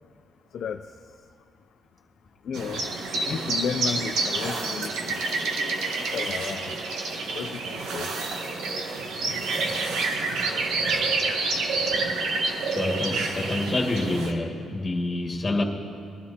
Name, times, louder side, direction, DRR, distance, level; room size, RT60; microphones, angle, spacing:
voice 1, 2.5-2.8 3.3-5.2 6.1-6.7 7.3-8.1, left 6 dB, 65° left, 6 dB, 0.4 m, -32 dB
sound 1, 2.5-14.3, right 3 dB, 80° right, 1.4 m, -28 dB
voice 2, 12.7-15.6, left 2 dB, 20° left, -1 dB, 2.0 m, -27 dB
21.5 x 13.0 x 2.9 m, 2.7 s
cardioid pair, 90°, 0 cm